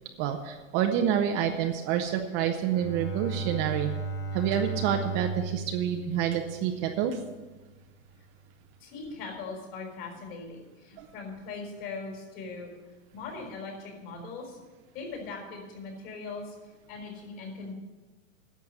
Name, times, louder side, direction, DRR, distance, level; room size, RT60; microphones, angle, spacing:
voice 1, 0.2-3.9 4.3-7.2 11.0-11.1, right 9 dB, 30° right, 4 dB, 0.7 m, -28 dB
Bowed string instrument, 2.7-7.2, right 3 dB, 10° left, 0.5 m, -36 dB
voice 2, 8.8-12.7 13.1-14.6 14.9-16.5 16.9-17.7, left 4 dB, 40° left, 1 dB, 4.3 m, -40 dB
11.0 x 7.0 x 9.1 m, 1.2 s
supercardioid pair, 155°, 38 cm